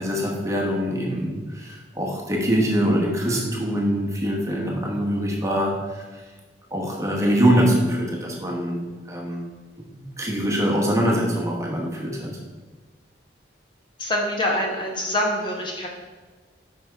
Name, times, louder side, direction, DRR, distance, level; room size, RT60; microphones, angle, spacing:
voice 1, 0.0-6.2 6.7-8.8 9.1-9.5 9.9-12.4, equal, 15° right, -1 dB, 1.2 m, -23 dB
voice 2, 14.0-15.9, left 1 dB, 25° left, 0 dB, 0.9 m, -25 dB
6.0 x 5.6 x 4.6 m, 1.4 s
head